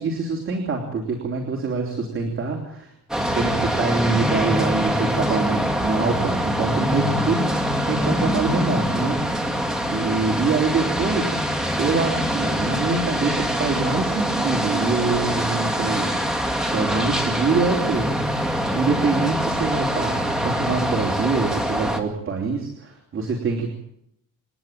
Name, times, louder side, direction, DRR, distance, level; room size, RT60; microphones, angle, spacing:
voice 1, 0.0-2.9 3.2-9.6 9.9-11.4 11.8-18.1 18.7-23.7, right 4 dB, 35° right, 1 dB, 3.3 m, -25 dB
sound 1, 3.1-22.0, equal, ahead, 2.1 m, -24 dB
27.5 x 11.0 x 9.1 m, 0.79 s
cardioid pair, 145°, 35 cm